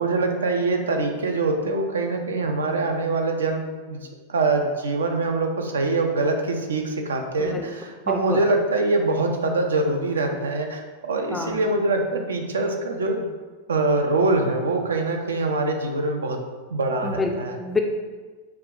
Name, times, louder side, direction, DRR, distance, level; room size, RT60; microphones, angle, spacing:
voice 1, 0.0-13.3 13.7-16.4 16.7-17.6, right 3 dB, 70° right, 4 dB, 0.4 m, -24 dB
voice 2, 8.1-8.4 11.3-11.6 17.0-17.3 17.6-17.8, left 3 dB, 10° left, 3 dB, 0.4 m, -27 dB
5.4 x 2.3 x 2.4 m, 1.4 s
figure-of-eight pair, 90°, 0 cm